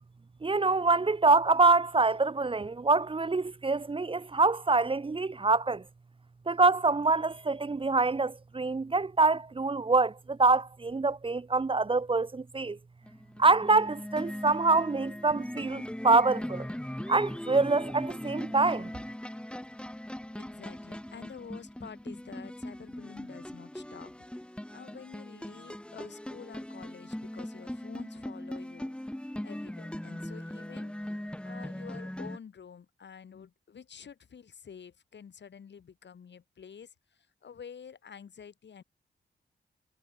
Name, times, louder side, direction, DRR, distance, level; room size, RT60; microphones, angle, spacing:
voice 1, 0.4-5.8 6.5-12.8 13.4-16.7 17.1-18.9, right 3 dB, 30° right, 0.9 m, -25 dB
sound 1, 13.0-32.4, left 1 dB, 5° left, 1.9 m, -40 dB
voice 2, 20.3-24.1 24.4-30.9 31.4-36.9 37.4-38.8, left 7 dB, 70° left, 4.4 m, -49 dB
cardioid pair, 85°, 19 cm